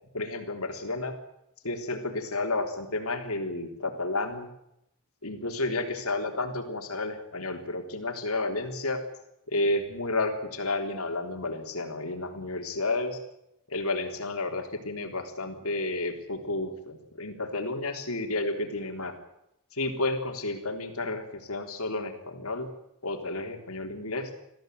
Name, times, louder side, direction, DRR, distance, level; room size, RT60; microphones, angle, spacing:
voice 1, 0.1-1.1 1.6-4.5 5.2-9.0 9.5-13.2 13.7-19.1 19.7-22.7 23.0-24.3, left 2 dB, 75° left, 5 dB, 3.6 m, -31 dB
21.5 x 15.0 x 9.3 m, 0.82 s
head